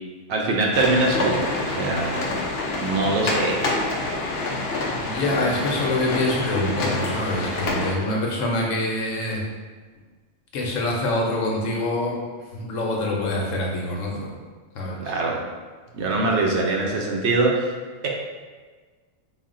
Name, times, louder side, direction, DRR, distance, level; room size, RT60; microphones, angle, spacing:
voice 1, 0.3-2.3 2.8-3.6 15.0-15.4 15.9-17.7 18.0-18.1, right 2 dB, 70° right, -1 dB, 0.9 m, -23 dB
sound 1, 0.7-7.9, left 2 dB, 60° left, 0.8 m, -27 dB
voice 2, 5.0-9.4 10.5-14.4 14.7-15.1, left 1 dB, 85° left, -1 dB, 1.1 m, -25 dB
4.1 x 2.1 x 3.7 m, 1.4 s
omnidirectional pair, 1.3 m